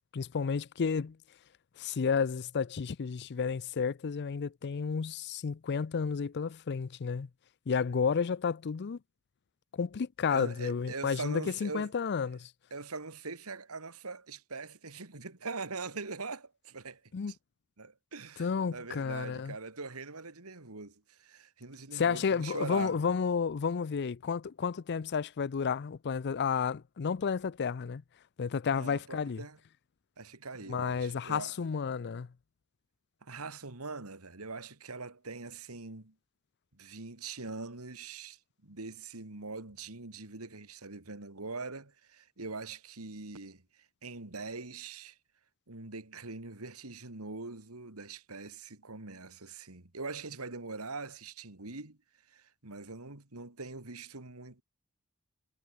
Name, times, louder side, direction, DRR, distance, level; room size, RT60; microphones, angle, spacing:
voice 1, 0.1-1.2 1.8-7.3 7.7-9.0 9.7-12.5 17.1-17.3 18.4-19.5 21.9-28.0 28.4-29.4 30.7-32.3, left 6 dB, 50° left, 0.5 m, -31 dB
voice 2, 10.3-11.9 12.7-17.0 17.3-17.4 17.8-23.0 28.7-29.6 30.2-31.5 33.2-36.1 36.7-45.2 45.7-52.0 52.3-54.6, right 3 dB, 90° right, 2.5 m, -42 dB
head